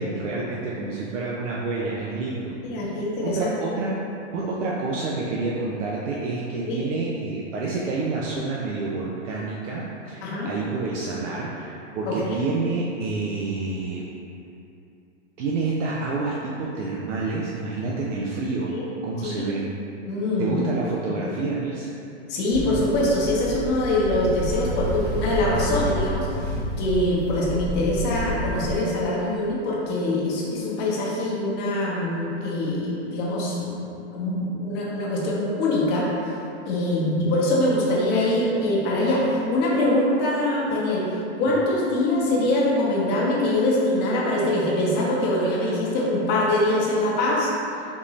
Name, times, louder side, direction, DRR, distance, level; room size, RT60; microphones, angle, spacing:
voice 1, 0.0-2.5 3.2-3.9 4.3-14.0 15.4-18.7 19.0-19.6 20.4-21.9, right 3 dB, 85° right, -5 dB, 0.6 m, -28 dB
voice 2, 2.6-3.5 6.7-6.8 10.2-10.5 12.0-12.4 18.7-18.8 19.2-19.5 20.1-20.6 21.2-21.3 22.3-33.7 34.1-36.1 36.7-41.1 41.4-47.5, left 1 dB, 30° left, -5 dB, 0.8 m, -23 dB
Ocean, 22.5-28.7, equal, 45° right, 1.1 m, -30 dB
3.7 x 2.6 x 3.0 m, 2.7 s
hypercardioid pair, 135°, 36 cm